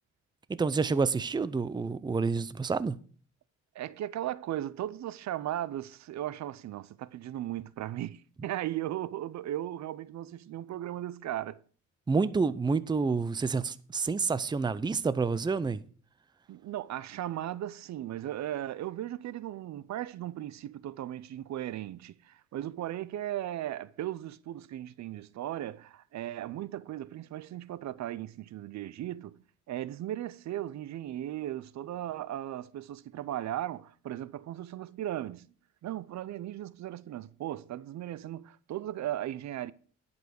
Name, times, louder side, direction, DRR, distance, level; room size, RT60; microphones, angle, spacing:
voice 1, 0.5-3.0 12.1-15.8, right 4 dB, 15° right, 0.5 m, -28 dB
voice 2, 3.7-11.6 16.5-35.5 35.8-39.7, right 12 dB, 65° right, 0.6 m, -37 dB
10.5 x 5.4 x 6.4 m
cardioid pair, 90°, 30 cm